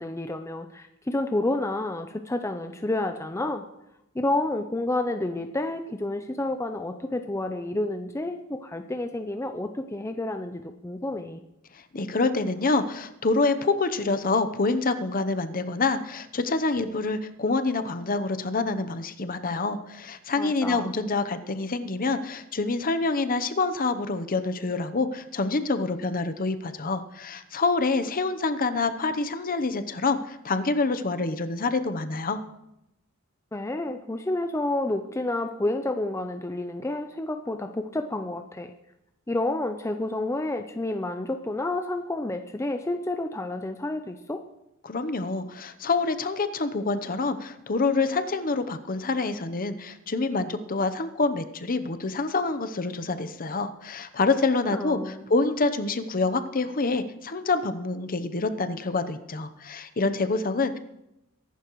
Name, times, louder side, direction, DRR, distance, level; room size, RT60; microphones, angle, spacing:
voice 1, 0.0-3.6 4.1-11.4 20.4-20.9 33.5-38.7 39.3-44.4 54.7-55.3, left 2 dB, 15° left, 6 dB, 0.5 m, -30 dB
voice 2, 11.7-32.4 44.8-60.8, left 3 dB, 40° left, 10 dB, 0.8 m, -27 dB
23.0 x 11.5 x 3.1 m, 0.87 s
head